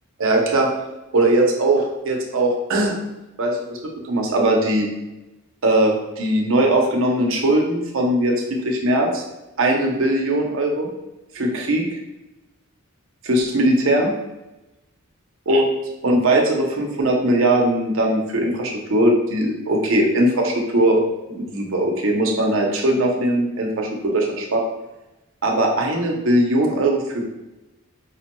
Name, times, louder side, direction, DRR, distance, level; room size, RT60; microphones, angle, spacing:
voice 1, 0.2-0.7 1.1-3.0 3.4-3.8 4.0-4.9 5.6-9.2 9.6-10.9 11.3-11.8 13.2-14.1 15.5-15.6 16.0-21.0 21.3-24.6 25.4-27.3, right 1 dB, 65° right, 1 dB, 0.7 m, -20 dB
4.8 x 2.2 x 3.0 m, 1.0 s
head